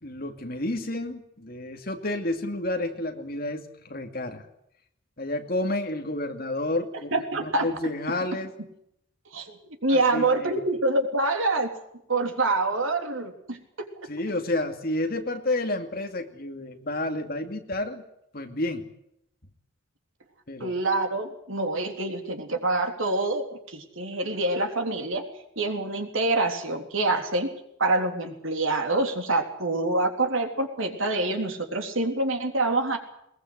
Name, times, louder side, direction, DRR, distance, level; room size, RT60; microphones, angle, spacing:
voice 1, 0.0-4.4 5.2-8.5 9.9-10.6 14.1-18.0 18.3-18.9 20.5-20.7, left 1 dB, 45° left, 4 dB, 2.4 m, -30 dB
voice 2, 7.1-7.7 9.3-9.5 9.8-11.7 12.1-13.9 20.6-25.2 25.6-27.5 27.8-33.0, right 2 dB, 70° right, 4 dB, 3.5 m, -26 dB
21.5 x 20.0 x 8.1 m, 0.77 s
head